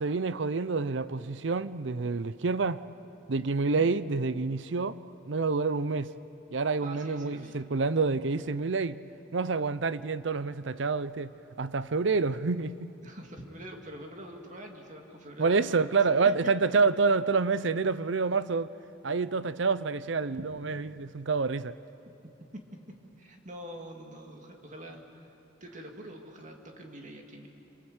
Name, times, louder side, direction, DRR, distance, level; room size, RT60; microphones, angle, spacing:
voice 1, 0.0-2.8 3.3-5.0 5.3-6.1 6.5-9.0 9.3-11.3 11.6-12.9 15.4-18.7 19.0-21.8, right 4 dB, 65° right, 0.6 m, -28 dB
voice 2, 6.8-7.6 13.0-15.9 22.5-22.6 22.9-25.0 25.6-27.5, right 1 dB, 40° right, 2.4 m, -45 dB
27.0 x 26.0 x 8.1 m
head